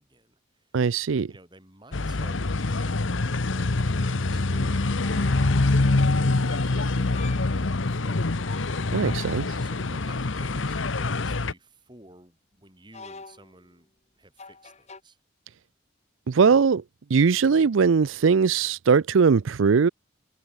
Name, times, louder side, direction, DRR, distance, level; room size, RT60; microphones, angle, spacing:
voice 1, 0.0-0.8 1.3-8.4 9.6-13.9 14.2-15.2, right 1 dB, 25° right, 7.6 m, -51 dB
voice 2, 0.7-1.3 8.9-9.5 16.3-16.8 17.1-19.9, right 5 dB, 80° right, 0.5 m, -20 dB
sound 1, 1.9-11.5, left 2 dB, 80° left, 1.0 m, -25 dB
sound 2, 3.1-3.3 5.0-6.0 7.0-7.6 8.3-9.8 10.7-11.0 12.9-13.7 14.4-15.0, left 4 dB, 35° left, 2.2 m, -46 dB
head